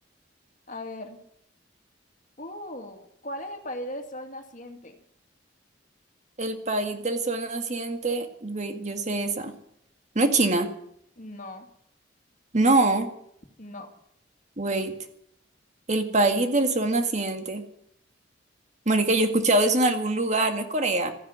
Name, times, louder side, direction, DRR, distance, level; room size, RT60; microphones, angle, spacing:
voice 1, 0.7-1.2 2.4-5.0 11.2-11.7 13.6-13.9, left 1 dB, 40° left, 5 dB, 2.3 m, -38 dB
voice 2, 6.4-9.5 10.2-10.7 12.5-13.1 14.6-15.0 15.9-17.6 18.9-21.1, right 2 dB, 35° right, 6 dB, 1.9 m, -24 dB
14.5 x 10.0 x 9.4 m, 0.72 s
head